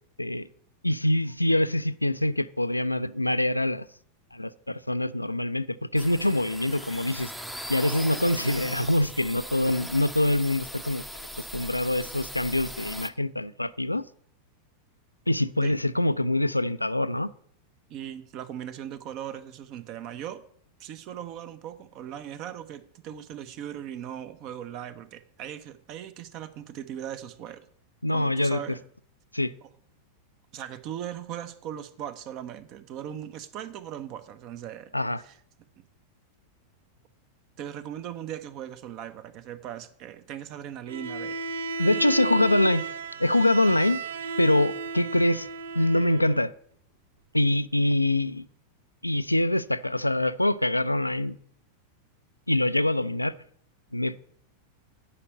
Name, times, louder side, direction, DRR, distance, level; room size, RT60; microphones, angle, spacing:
voice 1, 0.8-3.8 4.3-7.3 7.7-11.0 11.5-14.0 15.3-17.3 28.0-28.6 29.3-29.5 34.9-35.2 41.8-42.8 43.2-44.0 44.4-45.5 45.7-46.5 47.3-48.4 49.0-51.4 52.5-53.3 53.9-54.2, left 1 dB, 85° left, 0.4 m, -24 dB
sound 1, 6.0-13.1, equal, 5° right, 0.7 m, -39 dB
voice 2, 17.9-20.4 20.8-27.7 28.1-28.8 29.6-29.7 30.5-34.9 35.2-35.4 37.6-42.0 42.3-42.5, right 10 dB, 40° right, 0.8 m, -39 dB
Bowed string instrument, 40.9-46.5, right 4 dB, 65° right, 0.5 m, -34 dB
9.9 x 5.2 x 8.2 m
figure-of-eight pair, 90°, 0 cm